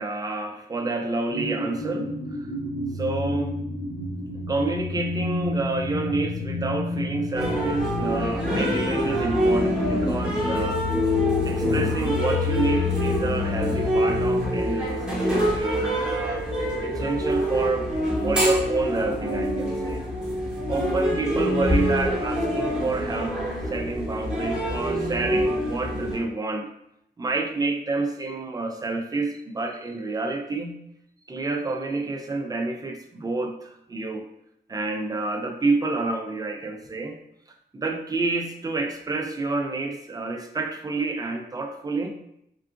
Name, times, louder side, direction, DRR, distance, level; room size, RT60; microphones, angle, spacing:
voice 1, 0.0-2.5 3.0-3.6 4.5-10.8 11.4-16.4 16.8-17.9 18.2-20.0 20.7-23.4 23.7-26.7 27.2-30.8 31.3-34.2 34.7-37.2 37.7-42.1, right 3 dB, 20° right, 4 dB, 0.4 m, -29 dB
sound 1, 1.3-14.6, left 4 dB, 85° left, 0.5 m, -30 dB
sound 2, 7.4-26.2, equal, 5° right, 0.9 m, -25 dB
3.6 x 2.4 x 2.4 m, 0.77 s
wide cardioid pair, 95°, 19 cm